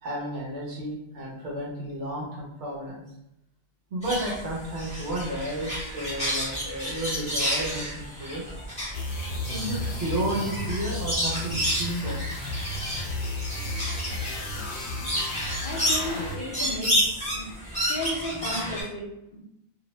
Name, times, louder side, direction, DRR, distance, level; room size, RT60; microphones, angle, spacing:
voice 1, 0.0-3.0 3.9-8.4 9.5-12.2, right 1 dB, 60° right, -4 dB, 0.9 m, -32 dB
sound 1, 4.0-18.8, equal, 5° left, 0.6 m, -31 dB
sound 2, 8.9-16.6, left 1 dB, 85° left, 1.0 m, -33 dB
voice 2, 15.6-17.5 17.8-19.4, left 1 dB, 50° left, -3 dB, 0.8 m, -34 dB
2.7 x 2.0 x 2.9 m, 0.81 s
omnidirectional pair, 1.4 m